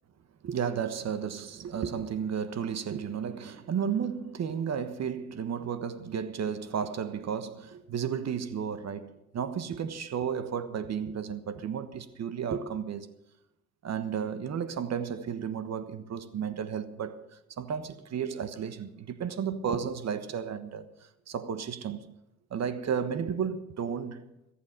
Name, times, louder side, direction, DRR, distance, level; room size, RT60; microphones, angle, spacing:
voice 1, 0.4-13.1 13.8-20.9 21.3-22.1 22.5-24.2, right 7 dB, 60° right, 1.3 m, -33 dB
21.0 x 8.5 x 6.7 m
cardioid pair, 90°, 30 cm